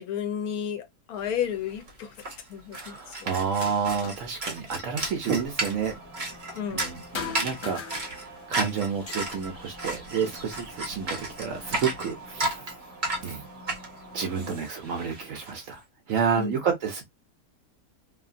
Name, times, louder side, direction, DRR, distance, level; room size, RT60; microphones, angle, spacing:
voice 1, 0.0-2.1 2.5-3.1 6.6-7.0 14.4-14.6 16.3-16.6, left 8 dB, 70° left, 1.1 m, -32 dB
sound 1, 1.4-1.5 1.7-15.5, right 2 dB, 35° right, 0.9 m, -34 dB
voice 2, 2.7-5.9 6.7-12.7 13.2-13.5 14.1-17.1, right 6 dB, 65° right, 0.8 m, -30 dB
sound 2, 3.4-4.4 4.7-6.9 7.1-8.5 8.9-10.8 11.4-12.3 13.3-13.4 14.0-15.0, left 6 dB, 55° left, 0.6 m, -42 dB
sound 3, 5.4-14.6, right 1 dB, 15° left, 1.0 m, -47 dB
2.8 x 2.7 x 2.4 m
omnidirectional pair, 1.7 m